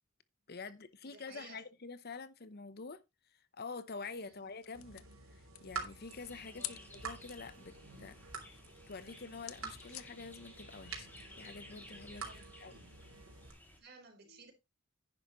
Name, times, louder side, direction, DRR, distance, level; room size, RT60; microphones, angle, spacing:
voice 1, 0.5-3.0 3.5-5.1 5.3-8.2 8.9-11.1 11.4-12.3 12.6-12.7, left 4 dB, 50° left, 0.9 m, -47 dB
voice 2, 1.0-1.6 4.3-4.6 6.4-6.8 9.0-9.2 12.2-12.9 13.2-14.5, right 3 dB, 50° right, 4.4 m, -58 dB
sound 1, 4.0-12.5, left 14 dB, 85° left, 0.7 m, -53 dB
sound 2, 4.7-13.5, right 5 dB, 80° right, 3.4 m, -49 dB
sound 3, 6.1-13.8, left 1 dB, 10° left, 3.7 m, -56 dB
11.0 x 9.9 x 3.1 m
head